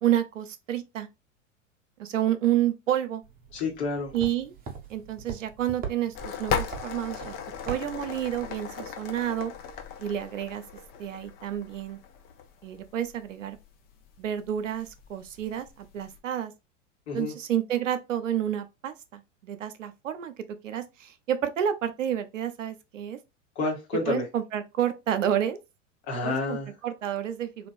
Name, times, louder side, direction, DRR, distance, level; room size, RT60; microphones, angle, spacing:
voice 1, 0.0-1.1 2.0-3.2 4.1-4.5 4.9-7.3 7.7-9.5 10.0-10.6 11.0-12.0 12.6-13.6 14.2-16.5 17.1-20.3 20.6-23.2 24.1-25.6 26.2-26.6 26.8-27.7, right 10 dB, 75° right, 0.6 m, -29 dB
sound 1, 3.2-8.4, right 6 dB, 25° right, 0.7 m, -42 dB
voice 2, 3.5-4.1 17.1-17.3 23.5-24.2 26.1-26.7, left 3 dB, 60° left, 1.4 m, -29 dB
sound 2, 6.1-16.2, left 7 dB, 25° left, 0.4 m, -38 dB
2.9 x 2.5 x 2.5 m
figure-of-eight pair, 90°, 38 cm